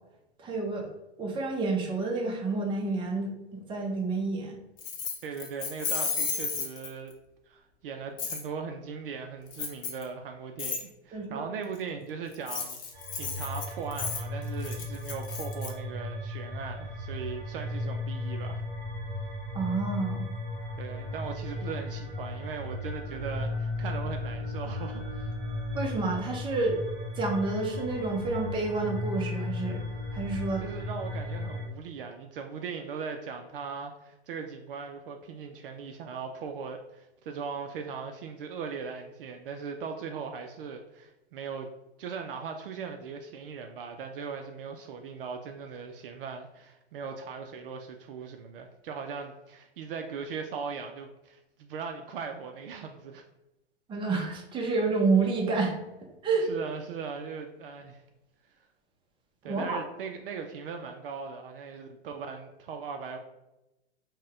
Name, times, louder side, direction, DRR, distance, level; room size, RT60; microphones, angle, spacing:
voice 1, 0.4-0.9 1.2-4.6 11.1-11.4 19.5-20.3 25.7-26.8 27.2-29.8 30.1-30.6 53.9-55.8 56.2-56.5 59.4-59.8, right 3 dB, 15° right, 0 dB, 0.7 m, -29 dB
Keys jangling, 4.8-7.1 8.2-8.4 9.5-10.0 10.6-10.8 12.3-15.7, left 5 dB, 25° left, 0.6 m, -33 dB
voice 2, 5.2-7.1 7.5-18.6 20.8-25.3 30.6-41.7 42.0-53.2 56.5-58.0 59.4-63.2, right 5 dB, 55° right, 4 dB, 0.5 m, -39 dB
sound 1, 12.9-31.7, left 1 dB, 35° right, 1.1 m, -35 dB
4.0 x 2.2 x 3.6 m, 0.93 s
hypercardioid pair, 115°, 33 cm